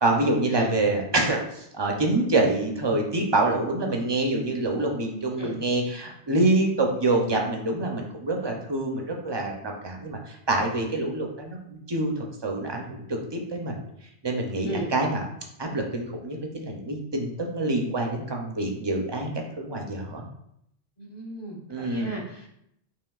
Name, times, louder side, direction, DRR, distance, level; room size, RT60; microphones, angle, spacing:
voice 1, 0.0-13.8 14.2-15.2 15.6-20.2 21.7-22.2, right 2 dB, 40° right, 1 dB, 0.4 m, -26 dB
voice 2, 21.0-22.5, equal, 30° left, -3 dB, 0.6 m, -35 dB
5.0 x 3.0 x 2.3 m, 0.75 s
omnidirectional pair, 1.1 m